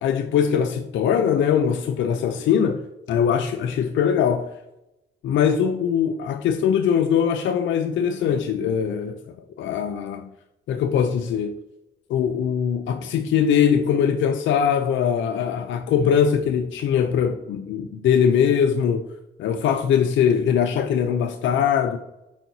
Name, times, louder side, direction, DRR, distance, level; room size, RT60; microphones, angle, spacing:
voice 1, 0.0-2.8 3.1-4.5 5.2-9.2 9.6-10.3 10.7-11.5 12.1-19.0 19.4-22.0, left 8 dB, 75° left, 0.5 m, -21 dB
6.2 x 4.7 x 4.0 m
cardioid pair, 90°, 20 cm